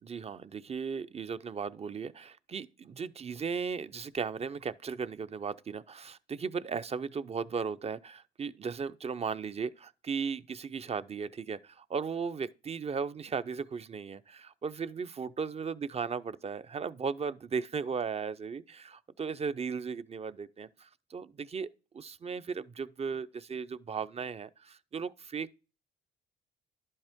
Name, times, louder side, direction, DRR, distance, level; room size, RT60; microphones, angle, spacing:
voice 1, 0.0-21.7 21.9-25.6, right 5 dB, 30° right, 0.5 m, -36 dB
11.0 x 5.4 x 3.5 m
cardioid pair, 90°, 20 cm